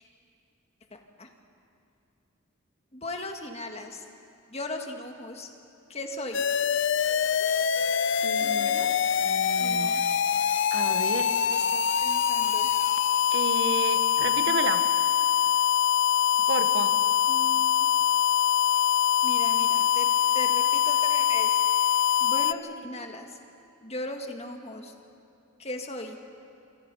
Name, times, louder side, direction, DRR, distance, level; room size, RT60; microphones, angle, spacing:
voice 1, 0.9-1.3 2.9-4.0 4.5-5.5 5.9-6.5 7.4-7.7 8.4-8.9 9.6-10.0 11.4-12.7 17.3-17.9 19.2-21.6 22.2-23.4 23.8-24.9 25.6-26.2, left 1 dB, 30° left, 4 dB, 1.9 m, -38 dB
sound 1, 6.3-22.5, left 9 dB, 65° left, 0.5 m, -24 dB
voice 2, 8.2-8.7 9.2-10.0 10.7-11.3 13.3-14.8 16.5-16.9, right 3 dB, 60° right, 8 dB, 1.3 m, -32 dB
26.0 x 26.0 x 5.6 m, 2.6 s
head